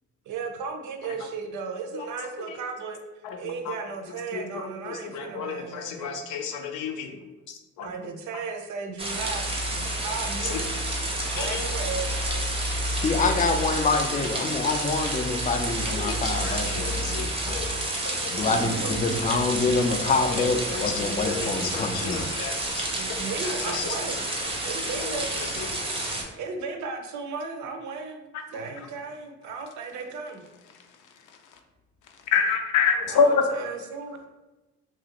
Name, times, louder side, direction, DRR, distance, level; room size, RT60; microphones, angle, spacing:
voice 1, 0.3-3.0 3.4-6.2 7.8-10.6 11.3-12.5 18.3-19.1 22.9-24.3 24.6-25.4 26.4-30.5 33.1-34.2, right 4 dB, 75° right, 4 dB, 0.5 m, -35 dB
voice 2, 1.9-2.6 3.2-3.7 4.1-7.2 7.5-8.4 10.4-10.6 11.3-11.6 15.9-17.7 18.0-18.5 18.8-18.9 20.3-22.8 23.1-23.2 23.4-24.0 24.9-25.1 25.3-25.7 28.3-28.9 30.7-31.6 32.1-33.4, left 6 dB, 85° left, 5 dB, 0.5 m, -30 dB
sound 1, 9.0-26.2, right 1 dB, 20° right, 0.6 m, -29 dB
voice 3, 12.9-17.7 18.3-22.3, left 3 dB, 25° left, 5 dB, 0.3 m, -26 dB
2.9 x 2.4 x 2.9 m, 1.1 s
cardioid pair, 90°, 30 cm